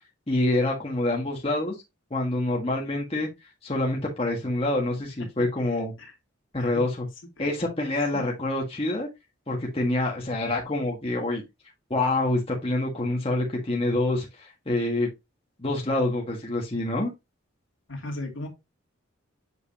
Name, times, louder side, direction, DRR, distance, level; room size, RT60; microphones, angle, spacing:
voice 1, 0.3-1.7 2.1-3.3 3.6-5.9 6.5-7.1 7.4-9.1 9.5-11.4 11.9-15.1 15.6-17.1, left 2 dB, 30° left, 1.6 m, -26 dB
voice 2, 17.9-18.5, left 2 dB, 70° left, 2.5 m, -36 dB
7.9 x 5.3 x 2.8 m
head